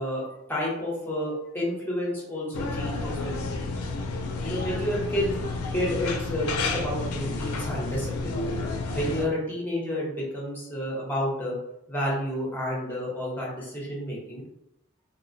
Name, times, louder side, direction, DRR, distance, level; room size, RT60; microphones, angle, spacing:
voice 1, 0.0-3.7 4.4-5.4 5.7-8.4 8.9-11.6 11.9-14.4, equal, 10° left, -5 dB, 0.7 m, -30 dB
sound 1, 2.5-9.2, left 3 dB, 90° left, 0.3 m, -31 dB
2.4 x 2.1 x 2.5 m, 0.83 s
head